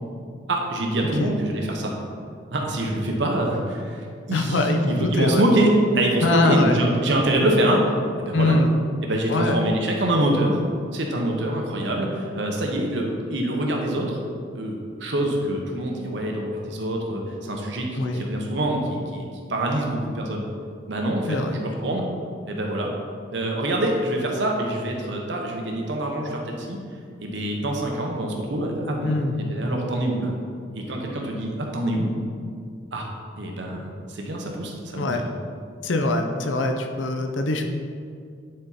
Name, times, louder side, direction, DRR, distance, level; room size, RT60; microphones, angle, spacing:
voice 1, 0.5-1.9 2.5-7.8 8.2-8.6 9.0-10.6 10.9-14.2 14.5-20.4 20.9-22.0 22.5-22.9 23.3-26.8 27.2-30.3 30.7-32.1 32.9-33.1 33.4-35.3, right 1 dB, 75° right, 0 dB, 1.0 m, -25 dB
voice 2, 4.3-5.4 6.2-6.7 8.3-8.7 9.3-9.6 17.9-18.2 21.3-21.6 29.0-29.3 35.0-35.2 35.8-37.6, left 2 dB, 90° left, 4 dB, 0.6 m, -22 dB
9.7 x 4.3 x 4.1 m, 2.3 s
head